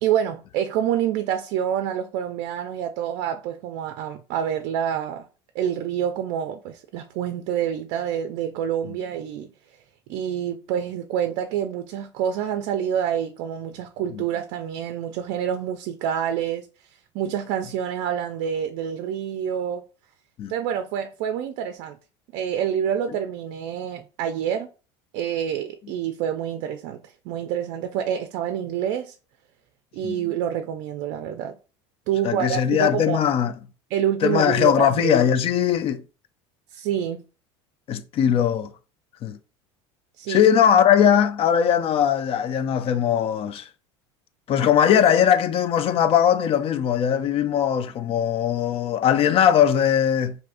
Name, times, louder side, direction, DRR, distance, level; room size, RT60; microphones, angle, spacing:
voice 1, 0.0-5.3 5.5-9.5 10.1-16.7 17.1-19.8 20.5-22.0 22.3-24.7 25.1-29.2 29.9-31.6 32.1-33.2 33.9-35.2 36.7-37.2 40.2-40.4, right 9 dB, 65° right, 0.4 m, -27 dB
voice 2, 32.2-33.5 34.2-36.0 37.9-38.7 39.2-39.4 40.3-43.7 44.5-50.4, left 9 dB, 40° left, 0.4 m, -20 dB
3.4 x 2.7 x 2.5 m
supercardioid pair, 95°, 14 cm